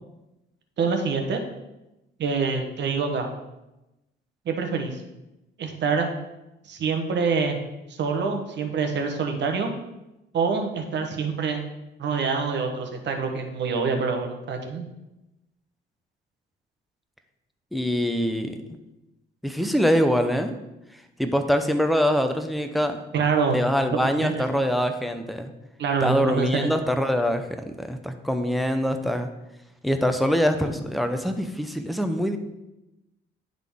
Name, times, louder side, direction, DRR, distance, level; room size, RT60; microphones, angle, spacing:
voice 1, 0.8-1.4 2.2-3.3 4.4-5.0 5.6-6.1 6.6-7.6 8.0-9.7 10.3-11.6 12.0-14.9 23.1-23.6 23.9-24.4 25.8-26.7, right 5 dB, 65° right, 4 dB, 1.1 m, -26 dB
voice 2, 17.7-18.8 19.4-20.5 21.2-23.0 23.5-25.5 26.0-29.3 29.8-32.4, equal, ahead, 7 dB, 0.6 m, -24 dB
10.5 x 3.9 x 3.6 m, 0.96 s
cardioid pair, 90°, 20 cm